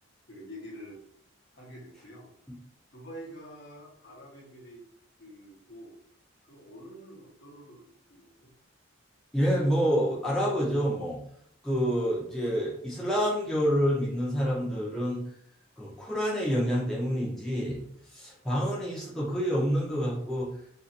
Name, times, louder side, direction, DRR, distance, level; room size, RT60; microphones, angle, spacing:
voice 1, 0.3-1.0 1.5-2.3 2.9-4.9 5.2-6.0 6.4-8.5, equal, 60° left, -3 dB, 0.9 m, -47 dB
voice 2, 9.3-11.2 11.6-15.2 15.8-20.5, equal, ahead, -7 dB, 0.7 m, -28 dB
2.8 x 2.6 x 2.5 m, 0.69 s
head